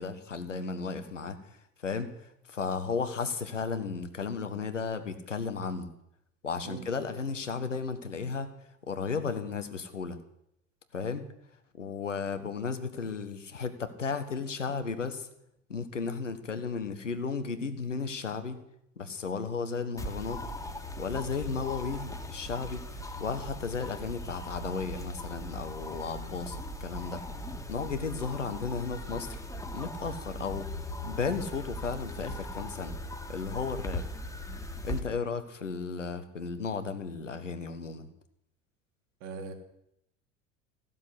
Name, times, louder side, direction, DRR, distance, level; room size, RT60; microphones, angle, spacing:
voice 1, 0.0-1.4 1.8-2.1 2.5-5.9 6.4-8.5 8.9-10.2 10.9-11.3 11.8-15.3 15.7-18.6 19.0-20.4 21.0-27.2 27.7-29.4 29.7-33.0 33.3-34.1 34.8-38.1, left 5 dB, 80° left, 9 dB, 1.6 m, -34 dB
sound 1, 20.0-35.0, left 1 dB, 10° left, 2.0 m, -39 dB
voice 2, 39.2-39.5, right 5 dB, 50° right, 5 dB, 2.7 m, -40 dB
16.0 x 7.4 x 10.0 m, 0.79 s
figure-of-eight pair, 70°, 37 cm